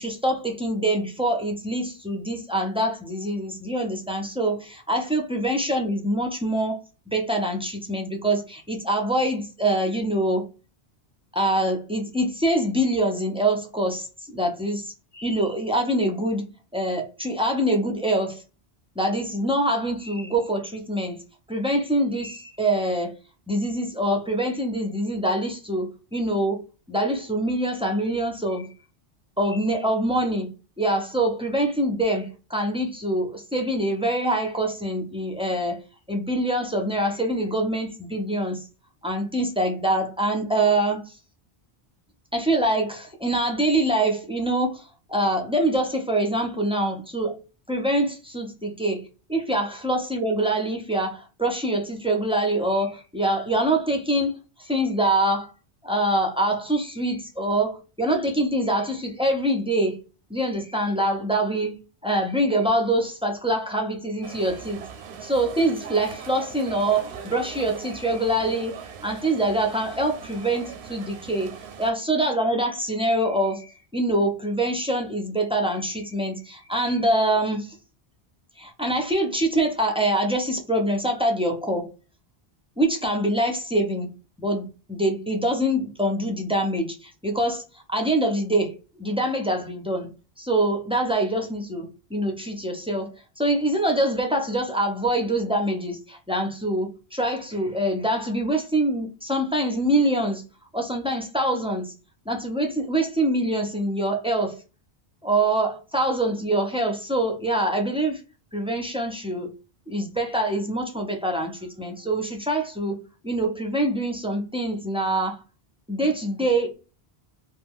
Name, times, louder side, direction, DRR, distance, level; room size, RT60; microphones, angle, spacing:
voice 1, 0.0-6.8 7.1-10.5 11.3-16.4 16.7-18.4 19.0-21.2 21.5-23.1 23.5-26.6 26.9-28.7 29.4-30.5 30.8-35.8 36.1-38.7 39.0-41.1 42.3-47.4 47.7-49.0 49.3-55.5 55.8-60.0 60.3-64.8 65.2-71.5 71.8-77.8 78.6-81.9 82.8-84.1 84.4-90.1 90.4-100.4 100.7-101.9 102.3-104.6 105.2-108.2 108.5-109.5 109.9-115.4 115.9-116.7, right 1 dB, 10° right, 0.4 m, -25 dB
sound 1, 64.2-71.9, right 7 dB, 80° right, 0.9 m, -40 dB
2.4 x 2.2 x 3.5 m
omnidirectional pair, 1.1 m